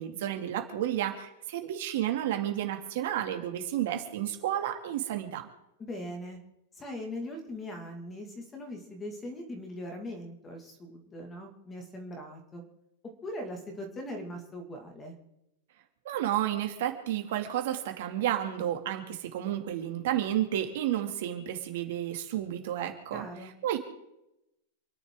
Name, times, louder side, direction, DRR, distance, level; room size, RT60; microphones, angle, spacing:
voice 1, 0.0-5.5 16.0-23.8, right 11 dB, 50° right, 4 dB, 2.4 m, -31 dB
voice 2, 5.8-6.4 6.8-12.6 13.2-15.2 23.1-23.5, left 1 dB, 10° left, 4 dB, 2.1 m, -40 dB
28.5 x 11.0 x 3.8 m, 0.87 s
supercardioid pair, 180°, 0 cm